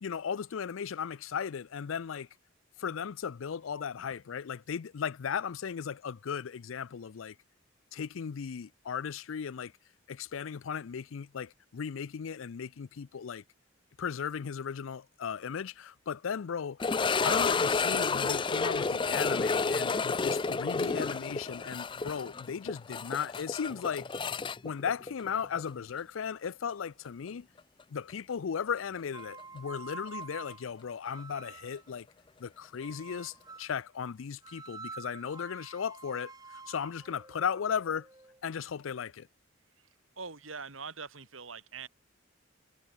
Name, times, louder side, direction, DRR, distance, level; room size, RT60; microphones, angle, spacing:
voice 1, 0.0-2.3 2.8-7.4 7.9-9.7 10.1-13.4 14.0-24.1 24.6-27.5 27.9-32.1 32.4-38.1 38.4-39.3, left 7 dB, 75° left, 0.5 m, -36 dB
sound 1, 16.8-25.7 26.0-26.1 26.7-26.8 29.4-29.5, left 4 dB, 25° left, 0.4 m, -30 dB
sound 2, 29.1-31.9 32.8-33.8 34.4-38.4, right 4 dB, 20° right, 1.6 m, -48 dB
voice 2, 40.2-41.9, right 5 dB, 80° right, 3.3 m, -43 dB
head